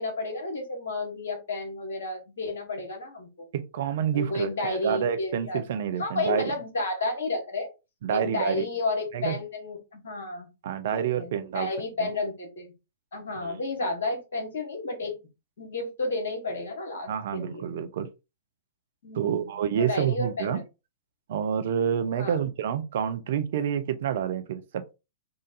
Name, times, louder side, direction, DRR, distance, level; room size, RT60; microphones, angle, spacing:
voice 1, 0.0-3.5 4.1-5.6 6.0-7.7 8.1-10.5 10.9-12.7 13.1-15.2 15.6-17.7 19.0-20.6 22.1-22.4, left 2 dB, 65° left, 1.9 m, -32 dB
voice 2, 3.5-6.5 8.0-8.6 9.1-9.4 10.6-11.7 12.0-12.1 13.4-13.6 17.1-18.1 19.1-20.6 21.3-24.9, right 8 dB, 60° right, 0.6 m, -28 dB
3.8 x 2.6 x 4.0 m
figure-of-eight pair, 105°, 0 cm